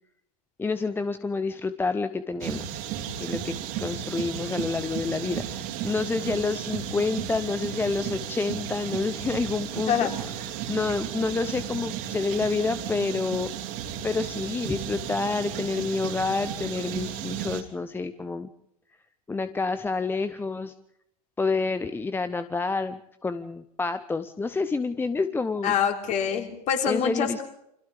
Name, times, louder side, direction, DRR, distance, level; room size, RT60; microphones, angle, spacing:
voice 1, 0.6-2.8 3.2-13.5 14.0-18.5 19.3-20.7 21.4-25.8 26.9-27.4, left 4 dB, 10° left, 12 dB, 0.8 m, -28 dB
sound 1, 2.4-17.6, right 9 dB, 45° right, 3.2 m, -34 dB
voice 2, 25.6-27.4, left 7 dB, 35° left, 3 dB, 3.8 m, -25 dB
29.0 x 26.0 x 3.6 m, 0.78 s
figure-of-eight pair, 85°, 20 cm